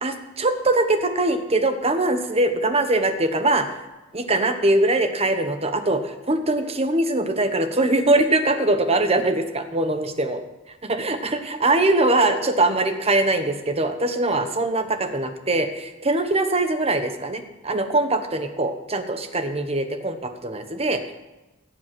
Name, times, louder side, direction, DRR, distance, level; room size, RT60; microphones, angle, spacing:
voice 1, 0.0-3.7 4.1-10.4 10.8-21.1, right 2 dB, 30° right, 7 dB, 1.2 m, -22 dB
17.0 x 7.2 x 6.1 m, 1.1 s
head